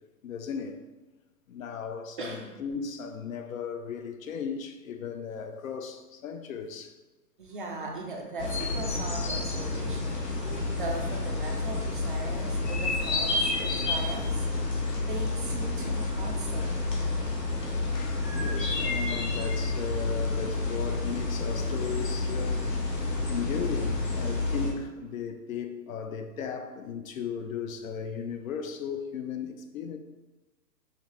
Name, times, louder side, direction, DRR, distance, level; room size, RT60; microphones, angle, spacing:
voice 1, 0.2-0.8 1.5-7.0 10.4-10.5 13.6-13.9 17.8-22.8 23.3-30.0, left 6 dB, 55° left, 0.6 m, -36 dB
voice 2, 2.2-2.5 7.4-10.2 10.7-14.5 14.9-16.8 17.8-17.9 24.4-24.7, right 2 dB, 35° right, 0.4 m, -39 dB
sound 1, 8.4-24.7, left 3 dB, 85° left, 1.3 m, -29 dB
sound 2, 8.8-14.4, left 4 dB, 30° left, 0.9 m, -49 dB
5.7 x 2.7 x 3.0 m
hypercardioid pair, 130°, 48 cm